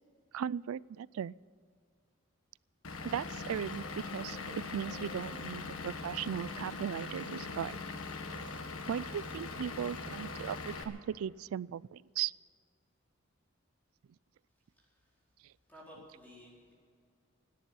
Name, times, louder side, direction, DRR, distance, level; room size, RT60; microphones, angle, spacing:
voice 1, 0.3-1.3 3.0-3.9 4.1-7.8 8.9-12.3, right 9 dB, 90° right, 24 dB, 0.3 m, -37 dB
Vehicle / Engine, 2.8-10.8, left 3 dB, 90° left, 1.6 m, -41 dB
voice 2, 14.7-15.2 15.7-16.7, equal, 10° left, -5 dB, 4.4 m, -55 dB
17.0 x 11.5 x 7.0 m, 2.1 s
head